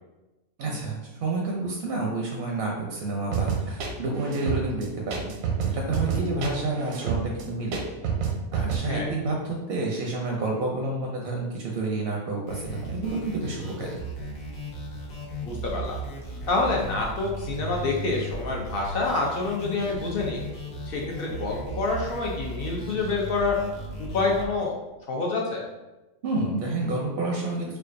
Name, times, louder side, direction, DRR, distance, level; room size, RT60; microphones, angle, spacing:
voice 1, 0.6-5.3 5.7-7.8 8.5-13.9 26.2-27.8, right 2 dB, 65° right, 0 dB, 0.6 m, -29 dB
sound 1, 3.3-8.8, right 7 dB, 85° right, 1.0 m, -28 dB
sound 2, 12.5-24.5, right 1 dB, 85° left, 1.2 m, -36 dB
voice 2, 15.4-16.0 16.5-20.4 20.9-23.6 24.0-24.7 25.1-25.6, left 3 dB, 60° left, -1 dB, 0.6 m, -27 dB
4.4 x 2.3 x 2.5 m, 1.0 s
omnidirectional pair, 1.4 m